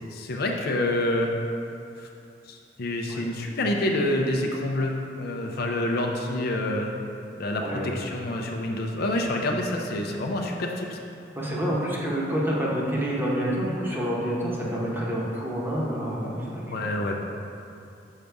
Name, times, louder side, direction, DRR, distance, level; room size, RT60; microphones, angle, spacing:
voice 1, 0.1-1.3 2.0-2.1 2.5-7.0 7.4-11.0 16.7-17.2, left 1 dB, 55° left, 1 dB, 0.5 m, -27 dB
voice 2, 11.4-16.9, equal, 10° right, -5 dB, 1.0 m, -28 dB
6.4 x 5.2 x 3.4 m, 2.6 s
head